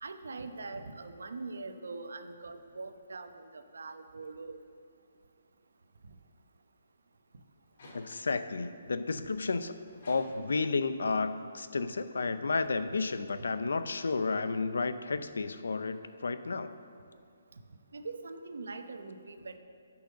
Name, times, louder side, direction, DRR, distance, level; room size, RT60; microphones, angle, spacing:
voice 1, 0.0-4.6 6.1-6.2 13.4-13.5 17.9-19.6, right 3 dB, 85° right, 8 dB, 0.8 m, -42 dB
sound 1, 7.6-8.5 9.1-10.7 11.4-15.0, left 1 dB, 50° left, 2.6 m, -58 dB
voice 2, 7.9-9.8 10.1-16.7, left 4 dB, 85° left, 11 dB, 0.6 m, -32 dB
10.0 x 5.9 x 6.5 m, 2.3 s
hypercardioid pair, 170°, 0 cm